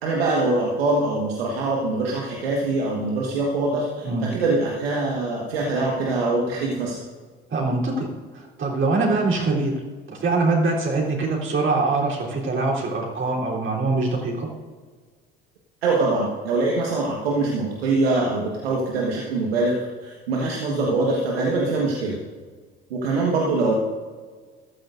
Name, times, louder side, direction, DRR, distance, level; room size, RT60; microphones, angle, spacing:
voice 1, 0.0-7.0 15.8-19.7 20.0-22.2 22.9-23.7, right 2 dB, 85° right, -2 dB, 1.6 m, -23 dB
voice 2, 7.5-8.1 8.3-9.7 10.1-14.5, right 3 dB, 40° right, -3 dB, 3.6 m, -23 dB
15.0 x 13.0 x 2.6 m, 1.6 s
hypercardioid pair, 65°, 29 cm